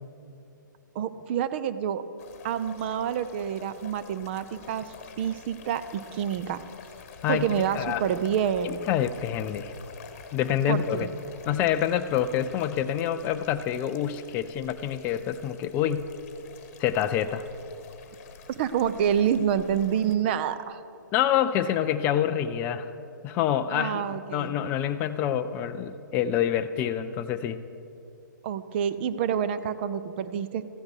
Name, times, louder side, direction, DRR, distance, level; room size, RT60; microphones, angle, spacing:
voice 1, 0.9-2.0 2.4-6.6 7.3-8.8 10.7-11.1 18.6-20.8 23.7-24.6 28.4-30.6, right 8 dB, 35° right, 13 dB, 0.5 m, -28 dB
sound 1, 2.2-20.2, left 6 dB, 35° left, 1.2 m, -48 dB
voice 2, 7.2-8.0 8.6-9.7 10.3-11.1 11.5-16.1 16.8-17.4 21.1-22.9 23.2-27.6, left 10 dB, 15° left, 9 dB, 0.3 m, -27 dB
14.0 x 9.5 x 6.4 m, 2.7 s
figure-of-eight pair, 130°, 11 cm